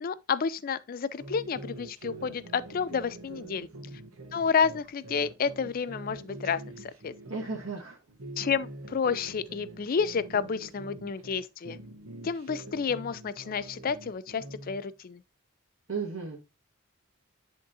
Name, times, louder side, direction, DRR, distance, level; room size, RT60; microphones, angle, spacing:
voice 1, 0.0-3.7 4.3-7.1 8.4-11.8 12.2-15.2, left 6 dB, 45° left, 0.4 m, -30 dB
sound 1, 1.2-7.7 8.1-11.4 11.6-14.8, right 2 dB, 85° right, 1.1 m, -45 dB
voice 2, 7.3-8.0 15.9-16.4, right 4 dB, 70° right, 1.8 m, -34 dB
10.5 x 3.7 x 2.7 m
head